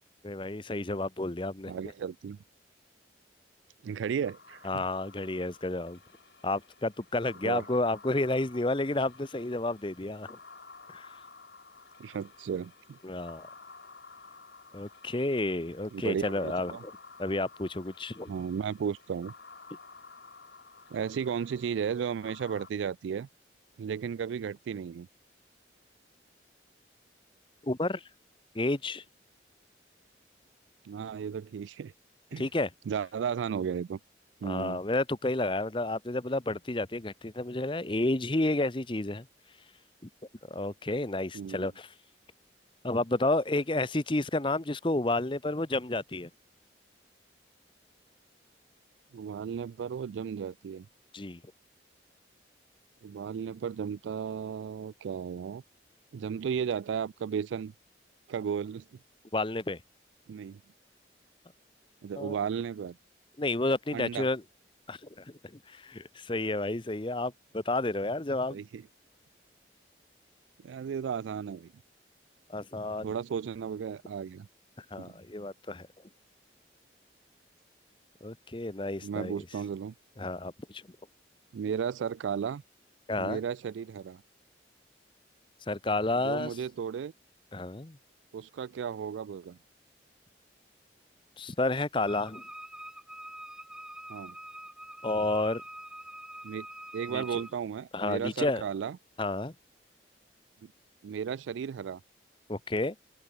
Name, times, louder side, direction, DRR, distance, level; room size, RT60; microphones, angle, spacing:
voice 1, 0.2-1.9 4.6-6.0 6.4-10.4 10.9-11.1 13.0-13.5 14.7-16.9 17.2-18.3 27.6-28.0 28.5-29.0 32.4-32.7 34.4-39.3 40.5-41.9 42.8-46.3 51.1-51.4 59.3-59.8 62.2-62.4 63.4-64.4 64.9-65.4 65.7-68.6 72.5-73.1 74.8-75.9 78.2-79.3 80.2-80.8 83.1-83.4 85.7-86.6 87.5-88.0 91.4-92.4 95.0-95.6 97.1-97.4 97.9-98.6 99.2-99.5 102.5-102.9, left 2 dB, 25° left, 0.9 m, -31 dB
voice 2, 1.7-2.4 3.8-4.8 7.4-7.6 12.0-13.0 15.9-16.8 18.3-19.3 20.9-23.3 23.8-25.1 30.8-31.9 32.3-32.5 32.9-34.0 34.4-34.8 41.3-41.7 49.1-50.9 53.0-55.6 56.1-57.7 58.3-58.8 60.3-60.6 62.0-63.0 63.9-64.3 68.5-68.8 70.6-71.7 73.0-74.5 75.0-75.1 79.0-79.9 81.5-82.6 83.2-84.2 86.2-87.1 88.3-89.6 94.1-94.4 96.4-96.7 96.9-99.0 100.6-100.7 101.0-102.0, right 7 dB, 90° right, 0.3 m, -34 dB
sound 1, 4.2-22.7, left 4 dB, 70° left, 2.7 m, -53 dB
Wind instrument woodwind instrument, 92.1-97.6, right 1 dB, 5° right, 3.3 m, -45 dB
head